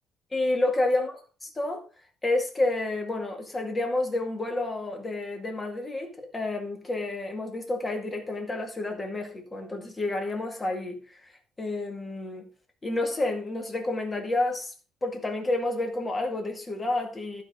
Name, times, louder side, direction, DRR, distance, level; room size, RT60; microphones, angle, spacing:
voice 1, 0.3-1.1 1.4-1.8 2.2-11.2 11.6-12.4 12.8-14.7 15.0-17.4, left 2 dB, 15° left, 2.0 m, -29 dB
15.0 x 5.2 x 3.8 m
cardioid pair, 170°, 0 cm